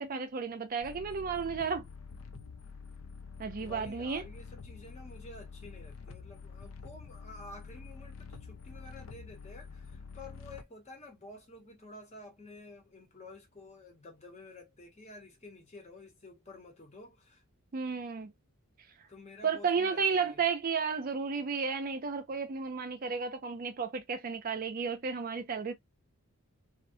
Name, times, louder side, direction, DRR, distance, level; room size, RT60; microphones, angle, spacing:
voice 1, 0.0-1.8 3.4-4.2 17.7-18.3 19.4-25.7, right 5 dB, 40° right, 0.4 m, -33 dB
sound 1, 0.8-10.6, left 5 dB, 65° left, 0.5 m, -47 dB
voice 2, 3.6-17.4 19.1-20.4, left 2 dB, 30° left, 0.9 m, -51 dB
2.4 x 2.2 x 2.6 m
head